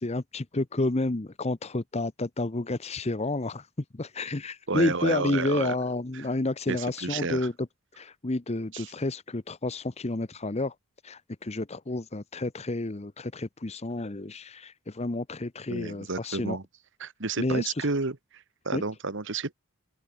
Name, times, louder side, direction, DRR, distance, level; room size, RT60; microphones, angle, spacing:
voice 1, 0.0-3.7 3.9-7.5 8.0-10.7 11.0-16.6 17.4-17.9 18.7-18.8, left 2 dB, 30° left, 0.9 m, -30 dB
voice 2, 4.7-5.7 6.1-6.3 6.7-7.5 8.7-8.9 15.7-16.6 17.0-19.5, right 3 dB, 60° right, 1.5 m, -31 dB
head